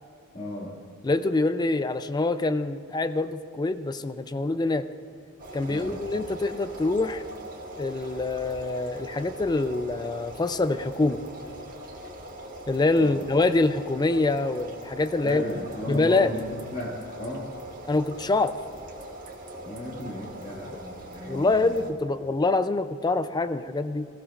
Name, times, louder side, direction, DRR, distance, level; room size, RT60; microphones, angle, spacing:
voice 1, 0.3-0.8 5.7-6.0 13.0-13.2 15.2-17.5 19.6-21.7, left 1 dB, 35° left, -8 dB, 2.2 m, -35 dB
voice 2, 1.0-4.9 5.5-7.2 7.8-11.2 12.7-15.4 15.9-16.4 17.9-18.6 20.7-20.8 21.3-24.1, left 2 dB, 20° left, 12 dB, 0.4 m, -25 dB
sound 1, 5.4-21.9, right 1 dB, 40° right, 1.6 m, -41 dB
21.5 x 15.0 x 2.5 m, 2.4 s
head